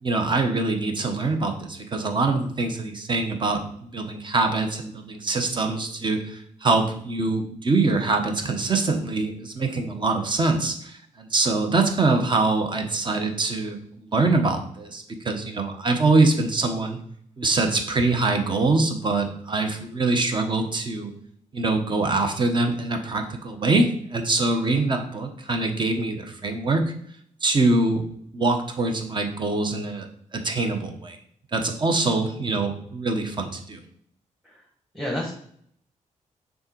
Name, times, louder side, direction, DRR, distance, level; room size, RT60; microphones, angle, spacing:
voice 1, 0.0-17.0 17.4-21.1 21.5-26.8 27.4-28.0 28.3-30.1 30.3-31.2 31.5-33.8, right 3 dB, 35° right, 5 dB, 1.1 m, -24 dB
voice 2, 34.9-35.3, left 1 dB, ahead, -2 dB, 1.4 m, -30 dB
6.5 x 4.0 x 4.6 m, 0.64 s
cardioid pair, 110°, 13 cm